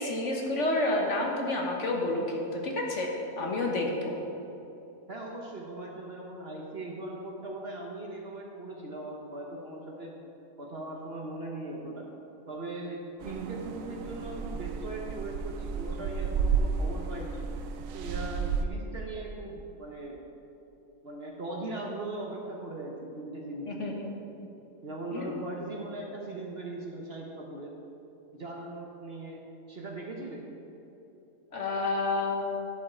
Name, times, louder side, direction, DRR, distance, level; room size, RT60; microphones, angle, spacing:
voice 1, 0.0-3.1 3.4-4.1 23.7-24.3 25.1-25.4 31.5-32.7, left 2 dB, 50° left, 0 dB, 1.3 m, -30 dB
voice 2, 5.1-10.1 10.6-12.1 12.5-17.4 17.9-20.2 21.0-24.1 24.8-27.7 28.3-29.4 29.7-30.5, right 2 dB, 45° right, -1 dB, 1.0 m, -39 dB
sound 1, 13.2-18.6, right 5 dB, 65° right, 0.9 m, -32 dB
11.0 x 7.1 x 4.3 m, 2.9 s
omnidirectional pair, 1.7 m